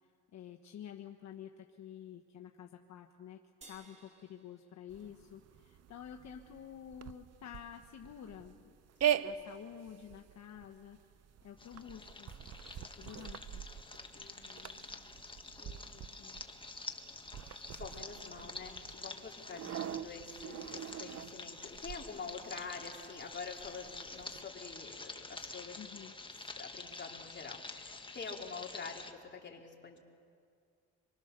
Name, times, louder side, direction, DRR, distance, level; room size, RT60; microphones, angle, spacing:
voice 1, 0.0-3.4 3.7-8.8 9.2-11.0 11.4-12.3 12.8-13.6 16.2-16.4 18.4-18.5 19.6-19.7 25.8-26.1, left 9 dB, 65° left, 3 dB, 1.2 m, -50 dB
sound 1, 3.6-6.2, right 2 dB, 20° right, 2.6 m, -61 dB
sound 2, 4.9-24.4, right 10 dB, 55° right, 0.8 m, -42 dB
sound 3, 11.6-29.1, left 3 dB, 15° left, 1.6 m, -48 dB
voice 2, 14.1-14.8 15.6-16.1 17.8-25.8 26.6-30.0, left 5 dB, 35° left, 0 dB, 3.6 m, -47 dB
26.0 x 23.5 x 6.7 m, 2.3 s
cardioid pair, 90°, 30 cm